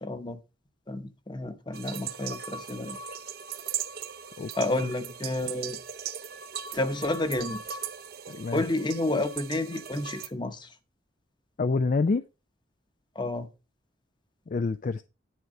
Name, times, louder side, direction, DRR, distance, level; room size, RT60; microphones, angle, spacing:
voice 1, 0.0-0.4 0.9-3.0 4.6-5.8 6.7-7.6 8.5-10.7 13.1-13.5, left 2 dB, 25° left, 0.9 m, -30 dB
sound 1, 1.7-10.3, right 7 dB, 50° right, 0.6 m, -38 dB
voice 2, 8.3-8.6 11.6-12.3 14.5-15.0, left 4 dB, 40° left, 0.3 m, -27 dB
10.5 x 4.6 x 5.3 m
head